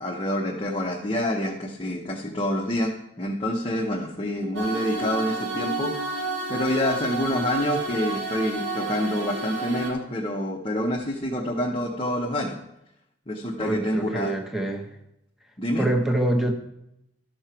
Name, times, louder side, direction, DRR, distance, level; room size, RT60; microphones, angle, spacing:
voice 1, 0.0-12.6 13.3-14.3 15.6-15.9, left 1 dB, 25° left, -1 dB, 0.9 m, -27 dB
sound 1, 4.5-9.9, right 2 dB, 75° right, 1.9 m, -30 dB
voice 2, 13.6-14.9 15.8-16.5, right 1 dB, ahead, 3 dB, 0.9 m, -25 dB
13.0 x 6.5 x 4.5 m, 0.83 s
head